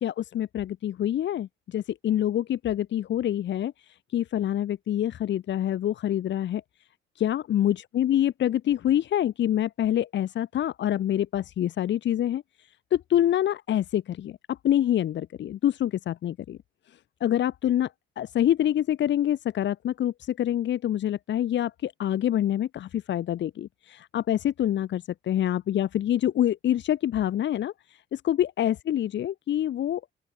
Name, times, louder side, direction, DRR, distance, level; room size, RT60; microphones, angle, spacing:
voice 1, 0.0-6.6 7.2-12.4 12.9-16.6 16.9-17.9 18.2-30.0, left 11 dB, 65° left, 1.2 m, -26 dB
open air
cardioid pair, 90°, 20 cm